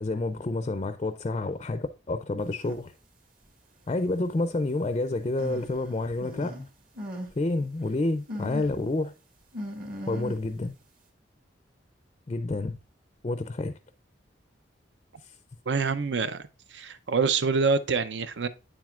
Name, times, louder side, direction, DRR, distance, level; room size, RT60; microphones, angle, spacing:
voice 1, 0.0-2.9 3.9-6.5 7.4-9.1 10.0-10.7 12.3-12.8 13.2-13.7, left 2 dB, 30° left, 0.4 m, -29 dB
sound 1, 2.6-2.8 3.5-3.6 5.4-6.7 6.9-7.4 7.7-7.8 8.3-8.9 9.5-10.6, left 1 dB, 50° right, 1.9 m, -38 dB
voice 2, 15.7-16.4 16.7-18.5, right 5 dB, 70° right, 0.6 m, -26 dB
9.1 x 7.4 x 2.4 m
head